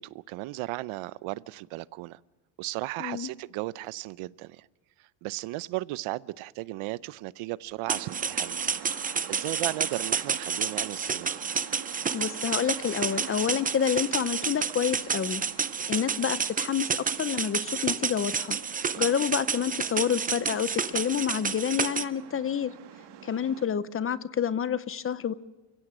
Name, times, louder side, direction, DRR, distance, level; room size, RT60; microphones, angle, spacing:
voice 1, 0.0-2.2 2.6-4.7 5.0-8.8 9.3-11.4 18.9-19.1, right 18 dB, 85° right, 19 dB, 0.8 m, -35 dB
sound 1, 7.9-22.0, right 6 dB, 20° right, 0.6 m, -30 dB
sound 2, 7.9-23.7, right 10 dB, 60° right, 2.0 m, -46 dB
voice 2, 12.1-15.4 15.9-16.9 17.2-18.6 19.0-22.7 23.2-25.3, left 8 dB, 30° left, 16 dB, 0.7 m, -28 dB
29.5 x 16.5 x 6.2 m, 1.2 s
cardioid pair, 160°, 48 cm